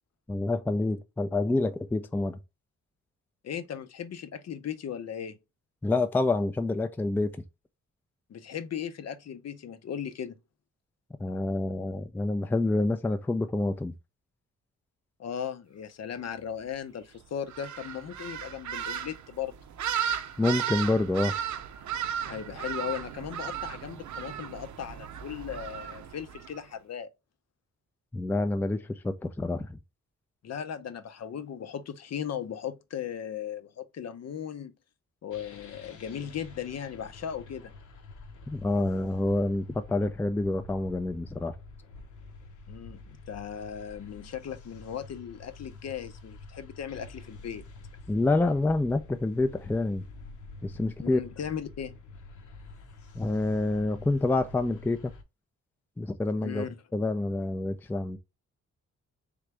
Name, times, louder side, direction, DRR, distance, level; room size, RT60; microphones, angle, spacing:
voice 1, 0.3-2.4 5.8-7.3 11.2-13.9 20.4-21.3 28.1-29.8 38.5-41.6 48.1-50.0 50.6-51.2 53.1-55.1 56.0-56.7 56.9-58.2, left 2 dB, 5° left, 0.4 m, -27 dB
voice 2, 3.4-5.4 8.3-10.4 15.2-19.5 22.3-27.1 30.4-34.7 35.2-37.7 42.7-47.7 51.0-52.0 56.4-56.7, left 8 dB, 60° left, 0.7 m, -37 dB
sound 1, 17.5-26.6, right 9 dB, 75° right, 0.6 m, -35 dB
sound 2, 35.3-55.2, left 3 dB, 80° left, 1.0 m, -48 dB
3.8 x 3.5 x 3.2 m
wide cardioid pair, 140°, 30 cm